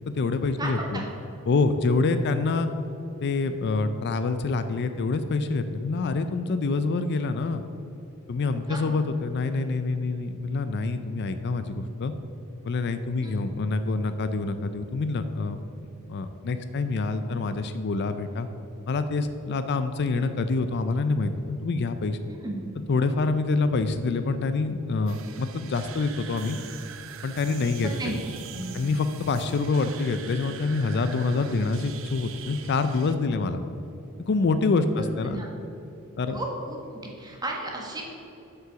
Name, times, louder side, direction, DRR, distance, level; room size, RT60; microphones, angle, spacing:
voice 1, 0.1-1.0 1.5-2.7 3.2-7.6 8.3-12.1 12.6-15.6 16.1-18.5 18.9-22.2 22.9-26.6 27.2-28.1 28.7-33.6 34.2-35.4 36.2-36.4, left 3 dB, 50° left, 10 dB, 0.4 m, -26 dB
voice 2, 0.6-1.1 8.7-9.0 13.2-13.3 22.3-22.5 27.8-28.1 28.5-28.7 35.0-35.5 36.3-36.8 37.2-38.0, right 2 dB, 20° right, -1 dB, 1.5 m, -34 dB
sound 1, 25.1-33.1, right 9 dB, 65° right, 0.6 m, -43 dB
7.6 x 5.7 x 6.8 m, 2.9 s
head